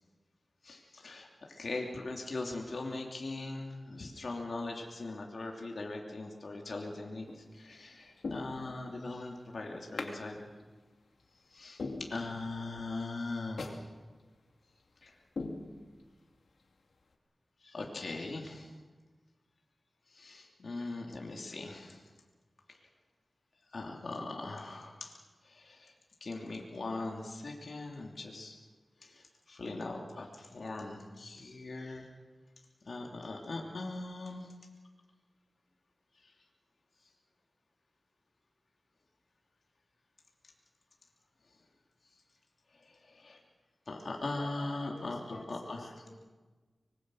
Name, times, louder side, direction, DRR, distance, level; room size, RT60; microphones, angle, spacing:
voice 1, 0.6-1.3 1.6-7.3 7.5-10.4 11.5-11.8 12.1-13.7 15.0-15.1 17.6-18.7 20.1-22.0 23.7-25.1 25.4-25.9 26.2-28.6 29.0-29.2 29.5-32.0 32.9-34.5 43.0-43.4 43.9-45.9, left 2 dB, 65° left, 0 dB, 3.0 m, -40 dB
sound 1, 7.2-7.6 8.2-9.1 10.0-10.2 10.6-10.7 11.2-11.3 11.8-12.7 13.0-13.1 13.6-13.8 14.2-14.3 14.8-15.0 15.4-16.2 16.6-16.7, left 3 dB, 80° left, 2.5 m, -41 dB
voice 2, 44.4-46.3, left 1 dB, 30° left, 2 dB, 5.9 m, -51 dB
24.5 x 21.5 x 6.4 m, 1.3 s
wide cardioid pair, 85°, 0 cm